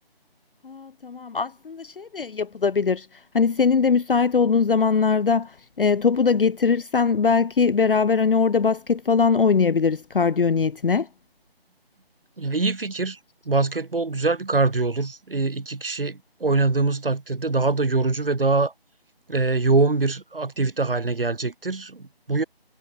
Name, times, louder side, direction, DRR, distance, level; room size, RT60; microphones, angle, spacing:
voice 1, 0.6-3.1 3.3-5.5 5.8-11.1, left 5 dB, 60° left, 0.5 m, -21 dB
voice 2, 12.4-13.2 13.5-18.7 19.3-22.4, right 3 dB, 60° right, 3.7 m, -23 dB
figure-of-eight pair, 160°, 31 cm